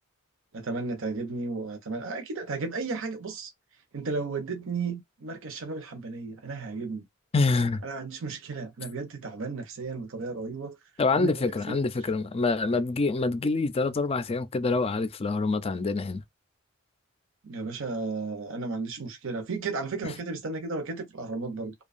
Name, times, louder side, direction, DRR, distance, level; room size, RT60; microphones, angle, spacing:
voice 1, 0.5-3.5 3.9-7.0 7.8-10.8 11.2-11.3 11.7-11.8 17.4-21.7, right 3 dB, 65° right, 0.7 m, -34 dB
voice 2, 7.3-7.8 11.0-16.2 20.0-20.1, left 3 dB, 25° left, 0.4 m, -26 dB
2.7 x 2.2 x 2.5 m
head